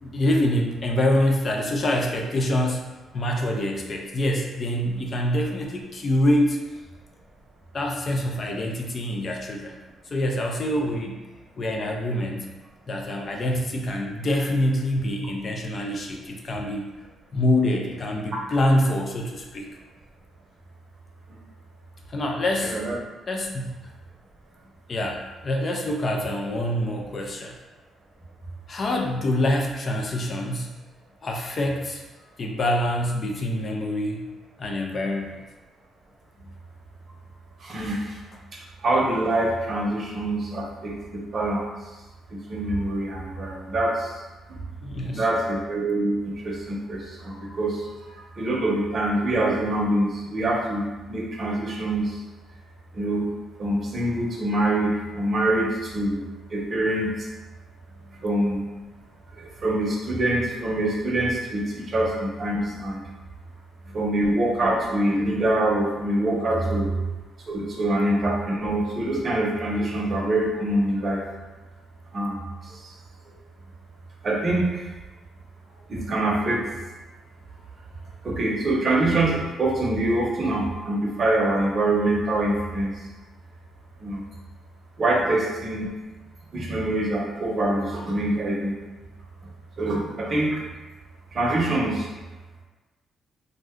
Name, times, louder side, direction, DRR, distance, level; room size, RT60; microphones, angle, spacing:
voice 1, 0.0-2.9 3.1-6.6 7.7-9.8 10.1-11.2 11.6-12.5 12.9-16.9 17.3-19.7 22.1-22.8 23.3-23.7 24.9-27.6 28.7-30.7 31.2-32.0 32.4-34.3 34.6-35.4 36.4-36.5 44.8-45.3 63.9-64.0, left 1 dB, 40° left, 1 dB, 0.4 m, -25 dB
voice 2, 22.6-23.0 37.6-38.0 38.8-41.6 42.3-44.1 45.1-47.8 48.2-52.1 52.9-53.2 53.6-56.2 56.5-57.1 58.2-58.6 59.4-63.0 63.9-66.9 67.5-71.2 72.1-72.4 74.2-74.8 75.9-76.6 78.2-82.9 84.0-84.2 85.0-85.9 86.5-88.7 89.8-90.6 91.3-92.1, right 1 dB, 45° right, -2 dB, 0.7 m, -25 dB
2.5 x 2.2 x 3.5 m, 1.1 s
cardioid pair, 90°, 0 cm